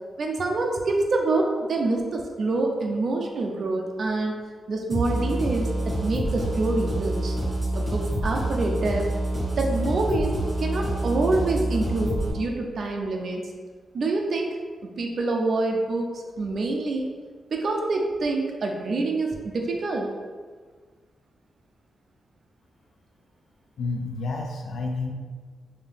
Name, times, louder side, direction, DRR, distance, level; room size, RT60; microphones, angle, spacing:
voice 1, 0.2-4.4 4.7-7.4 7.7-9.1 9.6-10.3 10.6-13.4 13.9-14.6 14.8-17.1 17.5-20.1, right 2 dB, 50° right, 1 dB, 0.5 m, -26 dB
sound 1, 4.9-12.3, right 1 dB, 20° right, 1.3 m, -27 dB
voice 2, 23.8-25.1, left 3 dB, 65° left, 1 dB, 0.4 m, -30 dB
3.5 x 2.7 x 3.5 m, 1.5 s
wide cardioid pair, 150°, 0 cm